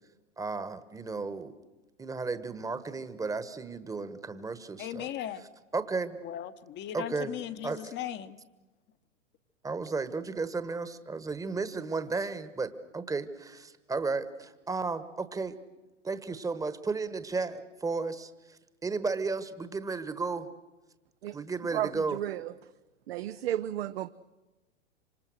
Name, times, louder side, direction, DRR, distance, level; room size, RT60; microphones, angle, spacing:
voice 1, 0.4-1.5 2.0-5.1 5.4-5.5 5.7-6.2 6.9-7.4 7.6-7.9 9.6-15.5 16.0-18.3 18.8-20.5 21.3-22.2, right 4 dB, 10° right, 13 dB, 1.3 m, -34 dB
voice 2, 4.8-5.4 6.2-8.4, left 11 dB, 30° left, 10 dB, 1.1 m, -37 dB
voice 3, 21.7-22.5 23.1-24.1, right 12 dB, 55° right, 11 dB, 0.8 m, -33 dB
26.5 x 26.0 x 6.5 m, 1.1 s
figure-of-eight pair, 100°, 36 cm